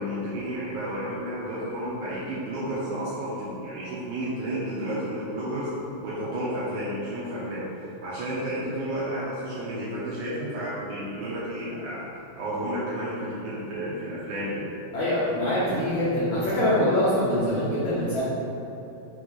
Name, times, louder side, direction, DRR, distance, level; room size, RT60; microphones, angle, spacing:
voice 1, 0.0-5.7 6.0-12.1 12.4-14.6, right 1 dB, 80° right, -9 dB, 1.7 m, -31 dB
voice 2, 14.9-18.2, left 1 dB, 75° left, -10 dB, 1.7 m, -24 dB
6.1 x 3.3 x 5.3 m, 2.9 s
omnidirectional pair, 4.8 m